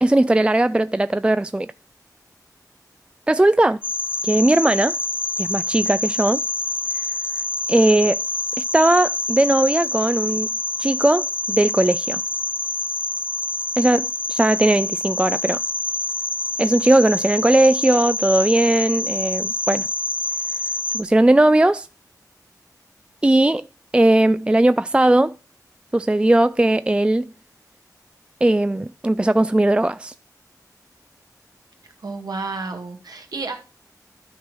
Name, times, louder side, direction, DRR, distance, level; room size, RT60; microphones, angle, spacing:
voice 1, 0.0-1.7 3.3-3.8 4.2-5.0 5.4-6.4 7.7-8.2 8.6-10.5 10.8-12.2 13.8-15.6 16.6-19.9 20.9-21.9 23.2-23.7 23.9-25.4 25.9-27.3 28.4-30.1, right 1 dB, 15° right, 0.3 m, -18 dB
sound 1, 3.8-21.0, left 2 dB, 30° left, 0.9 m, -26 dB
voice 2, 31.8-33.5, right 3 dB, 70° right, 2.1 m, -31 dB
12.0 x 4.6 x 4.4 m
wide cardioid pair, 75°, 7 cm